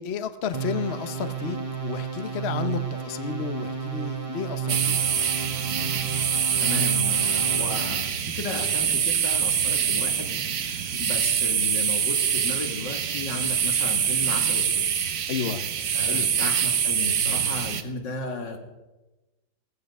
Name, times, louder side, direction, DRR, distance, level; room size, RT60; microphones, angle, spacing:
voice 1, 0.0-5.0 10.9-11.0 15.3-15.7 16.0-16.4, left 7 dB, 45° left, 10 dB, 0.9 m, -32 dB
sound 1, 0.5-8.1, right 7 dB, 20° right, 1.2 m, -32 dB
sound 2, 4.7-17.8, right 8 dB, 55° right, 1.2 m, -25 dB
voice 2, 6.6-14.9 15.9-18.6, left 3 dB, 75° left, 3 dB, 2.8 m, -35 dB
16.5 x 15.5 x 5.4 m, 1.1 s
omnidirectional pair, 2.0 m